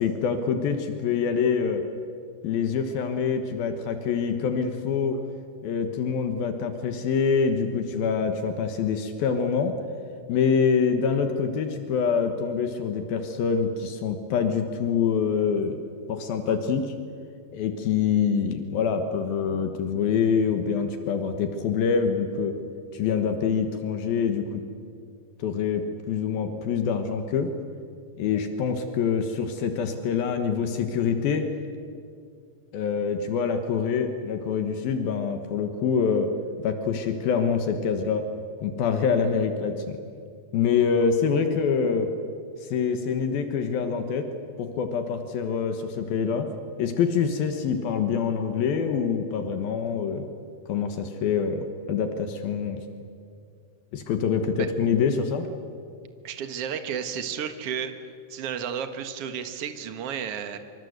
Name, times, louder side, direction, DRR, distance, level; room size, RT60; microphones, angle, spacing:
voice 1, 0.0-1.8 2.4-5.2 5.6-9.8 10.3-15.8 16.1-16.9 17.5-22.6 22.9-24.6 25.4-27.5 28.2-31.5 32.7-36.3 36.6-38.3 38.6-40.0 40.5-42.1 42.7-44.3 44.6-46.5 46.8-50.3 50.7-52.8 53.9-55.5, left 6 dB, 75° left, 7 dB, 3.1 m, -25 dB
voice 2, 56.2-57.9 58.3-60.6, right 8 dB, 55° right, 8 dB, 1.9 m, -32 dB
25.5 x 25.5 x 8.1 m, 2.3 s
omnidirectional pair, 4.4 m